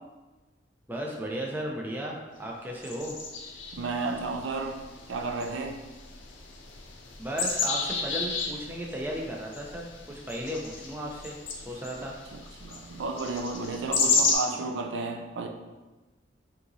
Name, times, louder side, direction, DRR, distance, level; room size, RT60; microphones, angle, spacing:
voice 1, 0.9-3.2 7.2-12.2, right 1 dB, 10° right, -2 dB, 0.5 m, -35 dB
sound 1, 2.8-14.3, left 4 dB, 80° left, 0.6 m, -33 dB
voice 2, 3.7-5.8 12.0-12.1 12.3-15.5, right 3 dB, 75° right, 4 dB, 0.4 m, -33 dB
5.2 x 2.9 x 2.7 m, 1.2 s
head